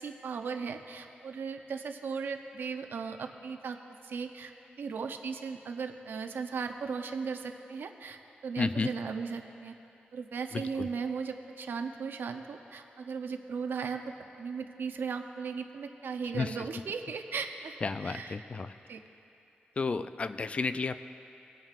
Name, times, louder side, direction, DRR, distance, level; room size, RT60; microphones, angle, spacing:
voice 1, 0.0-3.8 4.0-4.5 4.8-8.2 8.4-9.7 10.1-18.5 18.9-19.0, right 5 dB, 80° right, 6 dB, 0.6 m, -37 dB
voice 2, 8.6-8.9 10.5-10.9 16.3-16.6 17.8-18.7 19.8-21.0, left 4 dB, 35° left, 12 dB, 0.3 m, -32 dB
21.0 x 9.0 x 2.5 m, 2.8 s
wide cardioid pair, 145°, 4 cm